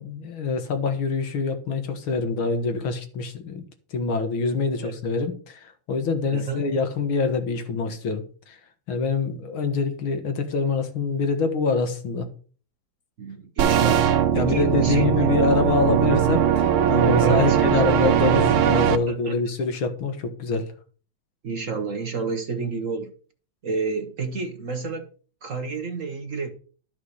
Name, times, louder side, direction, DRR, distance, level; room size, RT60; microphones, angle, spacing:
voice 1, 0.0-3.6 3.9-8.6 8.9-12.3 13.9-14.0 14.3-20.7, left 4 dB, 80° left, 2.3 m, -25 dB
voice 2, 6.3-6.6 9.3-9.4 13.2-14.0 14.4-15.3 17.2-18.0 19.1-19.3 21.4-23.1 23.6-25.1 25.4-26.5, right 4 dB, 45° right, 1.3 m, -30 dB
sound 1, 13.6-19.0, right 9 dB, 85° right, 1.8 m, -20 dB
12.0 x 5.8 x 6.5 m
omnidirectional pair, 2.2 m